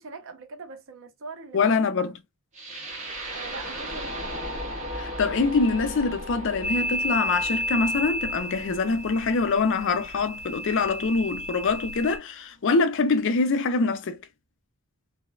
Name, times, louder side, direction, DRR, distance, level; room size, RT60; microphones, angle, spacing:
voice 1, 0.0-1.7 2.0-2.1 3.3-4.4, right 3 dB, 60° right, 0.6 m, -41 dB
voice 2, 1.5-2.1 4.9-14.2, left 4 dB, 55° left, 0.4 m, -24 dB
sound 1, 2.5-10.6, equal, 30° right, 0.8 m, -37 dB
sound 2, 6.6-12.2, equal, ahead, 1.1 m, -32 dB
2.9 x 2.1 x 2.3 m
head